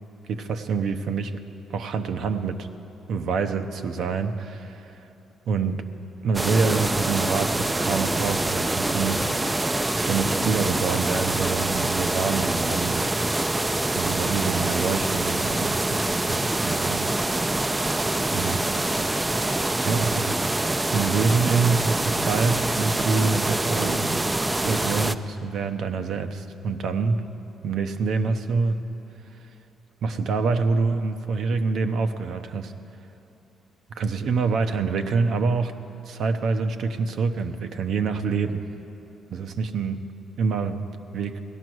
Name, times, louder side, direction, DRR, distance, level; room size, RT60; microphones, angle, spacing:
voice 1, 0.3-1.4 1.7-2.7 3.1-4.9 5.5-5.8 6.2-9.3 9.9-13.1 13.9-17.6 18.3-18.7 19.8-20.5 20.9-24.1 24.6-27.2 27.6-28.8 30.0-32.7 34.0-35.8 36.1-38.6 39.3-40.0 40.4-41.4, right 4 dB, 70° right, 7 dB, 0.8 m, -26 dB
sound 1, 6.3-25.1, right 2 dB, 15° right, 0.4 m, -25 dB
17.5 x 12.0 x 6.3 m, 2.9 s
cardioid pair, 90°, 0 cm